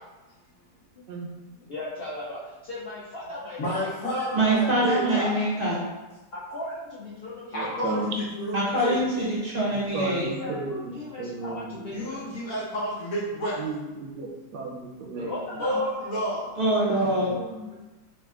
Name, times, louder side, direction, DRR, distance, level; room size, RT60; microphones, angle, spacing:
voice 1, 1.7-4.0 6.3-7.7 10.2-12.2 15.2-15.9, left 2 dB, 90° left, -7 dB, 0.5 m, -37 dB
voice 2, 3.6-5.4 7.5-9.0 11.9-13.6 15.6-16.5, equal, 60° left, -6 dB, 1.4 m, -30 dB
voice 3, 4.3-5.8 8.5-10.3 16.6-17.3, right 1 dB, 45° right, -7 dB, 0.8 m, -24 dB
voice 4, 7.5-8.1 9.7-12.3 13.6-15.8 16.9-17.7, right 2 dB, 85° right, 0 dB, 1.3 m, -35 dB
5.1 x 2.4 x 2.4 m, 1.1 s
omnidirectional pair, 1.8 m